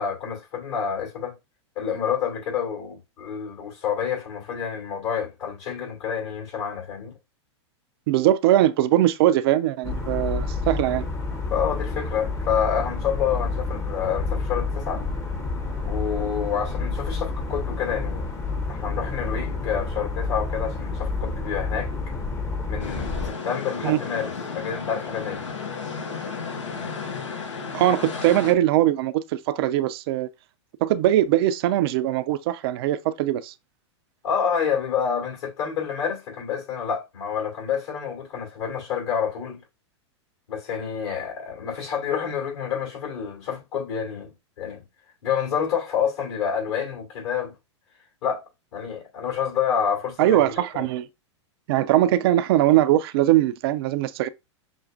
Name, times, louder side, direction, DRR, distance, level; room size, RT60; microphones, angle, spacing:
voice 1, 0.0-1.3 1.8-7.2 11.5-15.0 15.8-18.3 18.7-21.9 22.7-25.5 34.2-39.6 40.5-44.8 45.2-47.5 48.2-48.4 48.7-50.6, left 7 dB, 65° left, 2.4 m, -28 dB
voice 2, 8.1-11.1 23.8-24.0 27.7-30.3 30.8-33.5 50.2-51.1 51.7-54.3, right 13 dB, 55° right, 0.4 m, -21 dB
sound 1, 9.8-23.3, left 3 dB, 20° left, 0.8 m, -29 dB
sound 2, 22.8-28.5, left 5 dB, 85° left, 0.9 m, -33 dB
6.0 x 2.1 x 2.6 m
hypercardioid pair, 105°, 15 cm